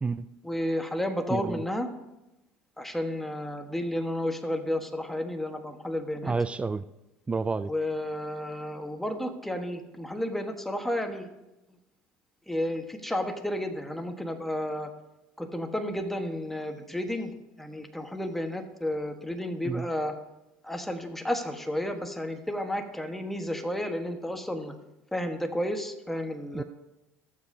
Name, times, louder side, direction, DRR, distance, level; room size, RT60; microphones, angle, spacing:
voice 1, 0.4-1.9 2.8-6.3 7.7-11.3 12.5-14.9 15.4-17.3 17.6-20.1 20.6-24.8 25.1-26.6, left 1 dB, 5° left, 5 dB, 1.3 m, -32 dB
voice 2, 1.3-1.6 6.2-6.8 7.3-7.7 19.6-19.8 26.5-26.6, right 4 dB, 20° right, 15 dB, 0.4 m, -29 dB
18.5 x 7.4 x 2.8 m, 0.96 s
supercardioid pair, 80°, 6 cm